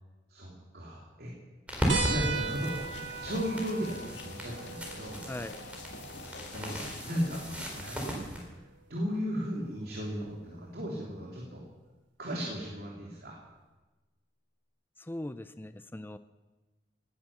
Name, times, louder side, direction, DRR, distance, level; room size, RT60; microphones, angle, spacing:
voice 1, 0.3-1.3 2.1-2.8 3.2-5.2 6.5-6.8 7.0-8.4 8.9-11.6 12.2-13.4, equal, 60° right, -2 dB, 3.2 m, -35 dB
sound 1, 1.7-8.4, right 1 dB, 5° right, 4.0 m, -36 dB
sound 2, 1.9-7.0 8.5-8.6 10.3-10.4, right 4 dB, 75° right, 3.0 m, -38 dB
sound 3, 2.3-7.9, left 2 dB, 75° left, 2.6 m, -45 dB
voice 2, 15.0-16.2, left 1 dB, 10° left, 11 dB, 0.5 m, -40 dB
19.0 x 10.5 x 7.1 m, 1.2 s
head